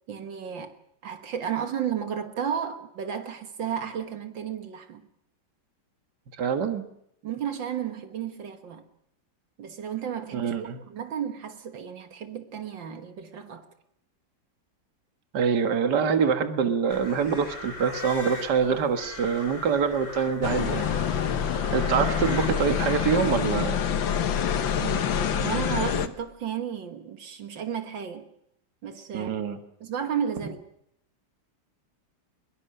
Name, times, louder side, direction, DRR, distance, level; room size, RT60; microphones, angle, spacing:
voice 1, 0.1-0.8 1.0-5.1 7.2-8.8 9.6-13.7 24.8-28.3 28.8-29.4 29.8-30.6, right 8 dB, 75° right, 2.2 m, -33 dB
voice 2, 6.4-6.8 10.3-10.8 15.3-20.9 21.7-23.8 29.1-29.6, right 6 dB, 60° right, 2.1 m, -25 dB
sound 1, 16.9-23.4, left 2 dB, 40° left, 4.0 m, -40 dB
sound 2, 20.4-26.1, left 8 dB, 90° left, 1.9 m, -26 dB
23.5 x 22.5 x 6.7 m
omnidirectional pair, 2.0 m